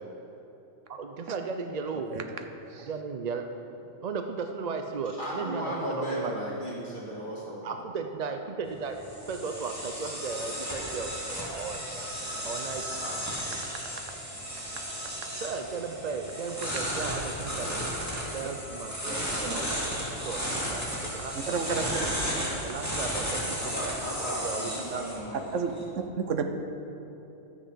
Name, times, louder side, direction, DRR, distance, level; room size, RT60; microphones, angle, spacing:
voice 1, 0.9-2.2 2.9-3.5 4.0-6.4 7.6-9.0 9.3-12.1 12.4-13.0 15.3-21.7 22.6-23.9 24.4-25.0, right 5 dB, 45° right, 6 dB, 0.5 m, -36 dB
voice 2, 2.1-2.4 2.7-2.9 15.0-15.3 18.4-18.5 19.1-19.6 21.3-22.5 25.5-26.4, right 5 dB, 80° right, 7 dB, 1.2 m, -33 dB
voice 3, 5.2-7.8 10.7-10.9 11.5-11.6 13.0-13.2 23.6-25.7, equal, 40° left, -6 dB, 2.3 m, -35 dB
sound 1, 8.6-25.8, equal, 15° right, 2.4 m, -34 dB
13.0 x 7.3 x 5.7 m, 3.0 s
omnidirectional pair, 1.3 m